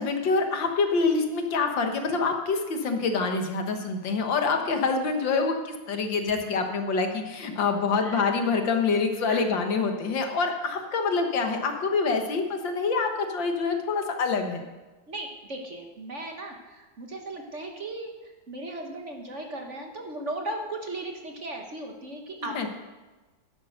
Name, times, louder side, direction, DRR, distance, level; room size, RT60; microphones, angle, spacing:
voice 1, 0.0-14.6 22.5-22.7, left 4 dB, 70° left, 5 dB, 2.1 m, -26 dB
voice 2, 8.0-8.4 9.3-9.4 15.1-22.7, right 2 dB, 40° right, 3 dB, 1.5 m, -37 dB
12.0 x 10.5 x 6.4 m, 1.2 s
omnidirectional pair, 2.1 m